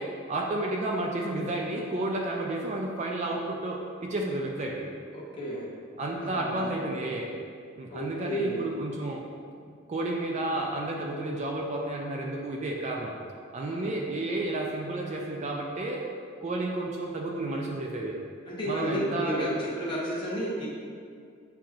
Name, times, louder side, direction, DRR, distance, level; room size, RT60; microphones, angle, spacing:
voice 1, 0.0-4.9 6.0-7.3 7.8-9.2 9.9-13.1 13.5-16.0 16.4-18.2 18.6-19.5, right 2 dB, 35° right, -1 dB, 0.3 m, -31 dB
voice 2, 5.1-5.7 6.2-6.6 7.9-8.6 13.6-14.0 18.5-20.7, right 1 dB, 25° left, -6 dB, 0.9 m, -32 dB
7.6 x 2.8 x 2.4 m, 2.2 s
head